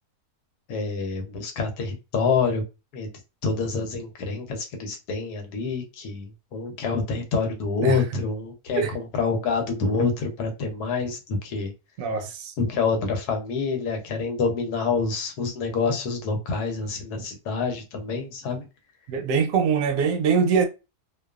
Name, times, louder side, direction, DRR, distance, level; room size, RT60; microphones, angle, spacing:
voice 1, 0.7-2.6 2.9-3.1 3.4-11.7 12.6-18.7, left 4 dB, 85° left, 1.3 m, -27 dB
voice 2, 12.0-12.5 19.1-20.7, right 6 dB, 70° right, 0.9 m, -23 dB
2.6 x 2.3 x 2.3 m
omnidirectional pair, 1.6 m